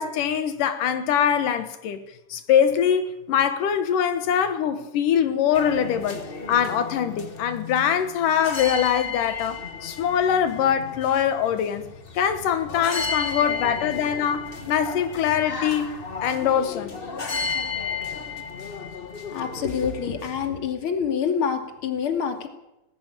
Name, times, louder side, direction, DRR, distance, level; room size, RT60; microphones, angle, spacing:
voice 1, 0.0-2.0 2.3-11.9 12.1-17.0, left 8 dB, 90° left, 3.0 m, -23 dB
sound 1, 5.5-20.5, left 5 dB, 65° left, 0.5 m, -33 dB
voice 2, 19.3-22.5, left 7 dB, 45° left, 3.1 m, -26 dB
19.5 x 17.0 x 9.1 m
omnidirectional pair, 3.6 m